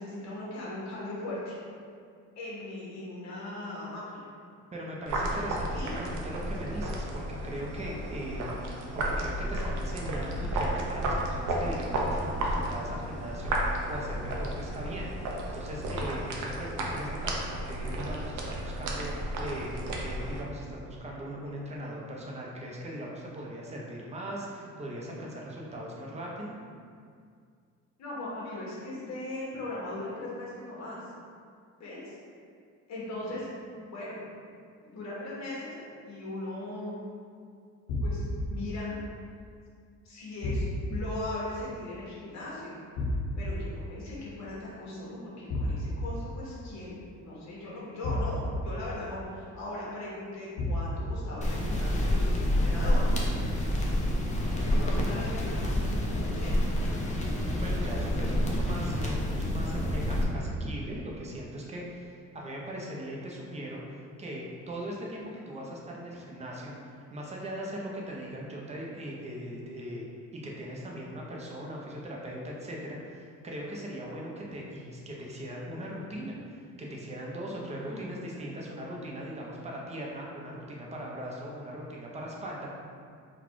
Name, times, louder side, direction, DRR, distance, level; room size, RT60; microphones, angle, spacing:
voice 1, 0.0-1.6 2.3-4.3 5.7-5.9 28.0-31.1 31.8-32.2 32.9-34.2 34.8-37.0 38.0-38.9 40.0-42.7 43.4-53.0 53.9-54.1 54.6-56.7 58.2-58.3 77.8-78.1, left 2 dB, 65° left, -6 dB, 1.3 m, -39 dB
voice 2, 4.7-8.4 8.9-26.5 57.6-63.8 64.2-70.1 70.3-82.7, equal, 20° right, -3 dB, 0.6 m, -39 dB
sound 1, 5.1-20.4, right 1 dB, 85° right, 0.7 m, -33 dB
sound 2, 37.9-38.5 40.4-41.0 43.0-43.5 45.5-46.1 48.0-48.6 50.6-51.1, left 2 dB, 90° left, 0.7 m, -30 dB
sound 3, 51.4-60.2, left 1 dB, 25° left, 0.6 m, -28 dB
4.1 x 2.3 x 4.5 m, 2.2 s
cardioid pair, 150°, 30 cm